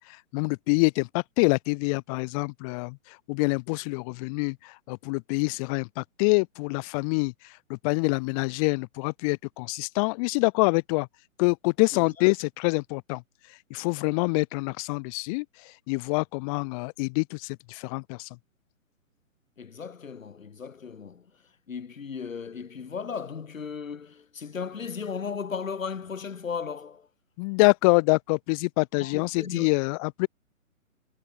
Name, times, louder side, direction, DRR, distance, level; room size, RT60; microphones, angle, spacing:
voice 1, 0.0-7.3 7.7-11.1 11.4-13.2 13.7-18.3 27.4-30.3, left 30 dB, 25° left, 1.5 m, -26 dB
voice 2, 11.9-12.3 19.6-21.3 21.7-27.1 29.0-29.7, left 6 dB, 70° left, 4.9 m, -36 dB
figure-of-eight pair, 130°, 41 cm